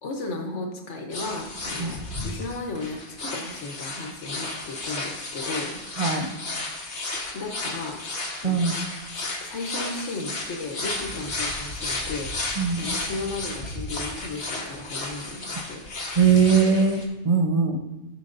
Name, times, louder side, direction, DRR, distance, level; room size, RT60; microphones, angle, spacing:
voice 1, 0.0-5.8 7.3-8.0 8.4-8.8 9.1-15.8, left 3 dB, 85° left, 2 dB, 1.4 m, -35 dB
sound 1, 1.1-17.0, left 2 dB, 70° left, 1.6 m, -33 dB
voice 2, 6.0-6.3 8.4-8.7 12.6-12.9 16.1-17.8, right 6 dB, 35° right, 3 dB, 0.9 m, -21 dB
14.5 x 6.1 x 2.6 m, 1.1 s
omnidirectional pair, 1.2 m